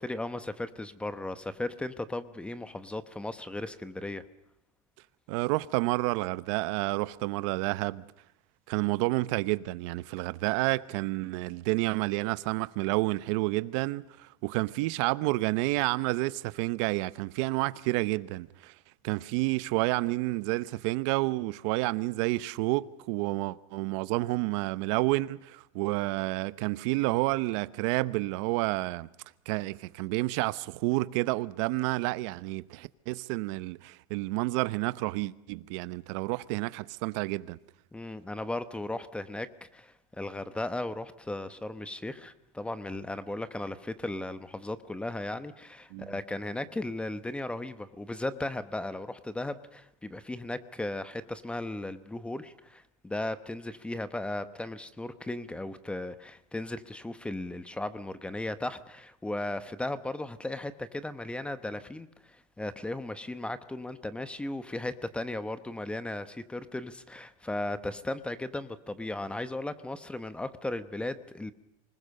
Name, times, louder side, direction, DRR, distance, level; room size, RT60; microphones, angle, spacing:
voice 1, 0.0-4.2 37.9-71.5, left 2 dB, 5° left, 1.0 m, -36 dB
voice 2, 5.3-8.0 8.7-18.7 19.0-29.1 29.5-37.6 45.9-46.2, right 21 dB, 65° right, 0.8 m, -30 dB
25.5 x 20.0 x 6.6 m
supercardioid pair, 150°, 17 cm